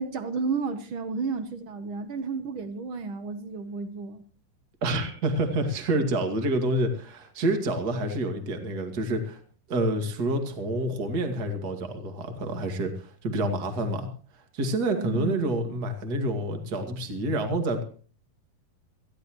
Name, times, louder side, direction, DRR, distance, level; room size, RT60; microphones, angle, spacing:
voice 1, 0.0-4.2 14.9-15.4, right 4 dB, 65° right, 1.3 m, -32 dB
voice 2, 4.8-9.4 9.7-14.1 14.5-17.8, right 1 dB, 35° right, 2.2 m, -28 dB
20.5 x 15.5 x 3.1 m
omnidirectional pair, 3.9 m